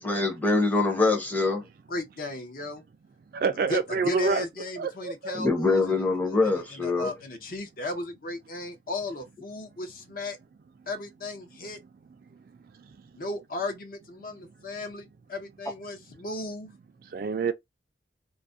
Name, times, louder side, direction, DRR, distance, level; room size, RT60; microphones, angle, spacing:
voice 1, 0.0-1.6 5.3-7.1, left 3 dB, 10° left, 0.6 m, -24 dB
voice 2, 1.9-2.8 3.7-10.4 10.9-11.8 13.2-14.3 14.6-14.9 15.6-16.7, left 2 dB, 50° left, 0.6 m, -35 dB
voice 3, 3.3-4.4 4.8-5.4 12.8-12.9 17.1-17.5, right 5 dB, 50° right, 0.3 m, -27 dB
2.4 x 2.0 x 2.5 m
head